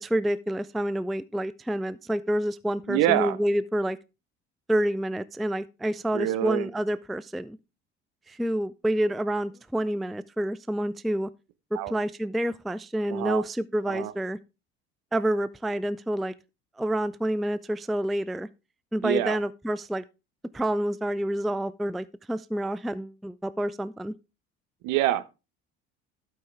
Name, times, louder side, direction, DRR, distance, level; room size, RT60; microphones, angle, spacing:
voice 1, 0.0-4.0 4.7-7.6 8.3-11.3 11.7-14.4 15.1-16.3 16.8-18.5 18.9-20.0 20.5-24.1, right 1 dB, ahead, 0.4 m, -28 dB
voice 2, 2.9-3.4 6.1-6.7 11.7-11.9 13.1-13.4 13.9-14.1 19.0-19.4 24.8-25.2, right 14 dB, 60° right, 1.2 m, -26 dB
12.0 x 6.9 x 3.4 m
figure-of-eight pair, 55°, 33 cm